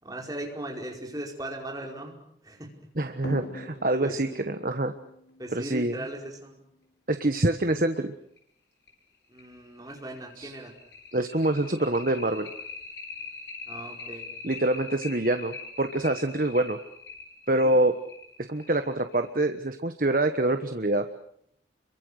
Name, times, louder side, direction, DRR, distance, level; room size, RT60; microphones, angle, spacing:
voice 1, 0.0-2.2 2.4-2.7 3.2-3.4 4.0-4.4 5.4-6.6 9.3-10.7 13.7-14.3 17.5-17.8, right 1 dB, 20° right, 1 dB, 5.0 m, -38 dB
voice 2, 3.0-4.9 5.5-6.0 7.1-8.1 10.4-10.5 11.1-12.5 14.4-16.8 17.5-18.0 18.5-21.0, right 1 dB, 50° right, 8 dB, 1.3 m, -25 dB
sound 1, 3.2-6.4 7.9-8.0 8.4-8.5 8.9-9.0 9.4-19.4, left 3 dB, 80° left, 5.7 m, -42 dB
30.0 x 23.5 x 6.6 m, 0.69 s
head